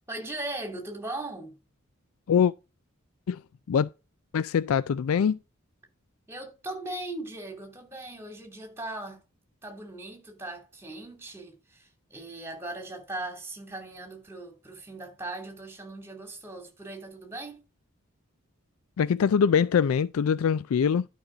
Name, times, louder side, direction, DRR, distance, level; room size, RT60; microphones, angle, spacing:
voice 1, 0.1-1.6 6.3-9.2 9.6-17.7, right 2 dB, 10° right, 2.8 m, -39 dB
voice 2, 4.3-5.4 19.0-21.1, left 7 dB, 85° left, 0.4 m, -23 dB
11.5 x 5.4 x 3.9 m
head